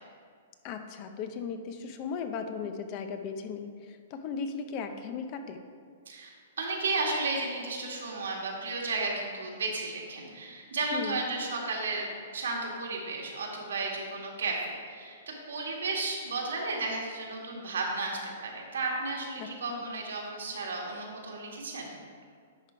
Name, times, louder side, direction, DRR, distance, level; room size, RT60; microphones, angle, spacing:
voice 1, 0.6-5.6 10.9-11.2 19.4-19.8, left 6 dB, 35° left, 7 dB, 0.6 m, -37 dB
voice 2, 6.1-21.9, right 3 dB, 90° right, -1 dB, 1.7 m, -33 dB
10.5 x 3.8 x 4.5 m, 2.1 s
hypercardioid pair, 150°, 0 cm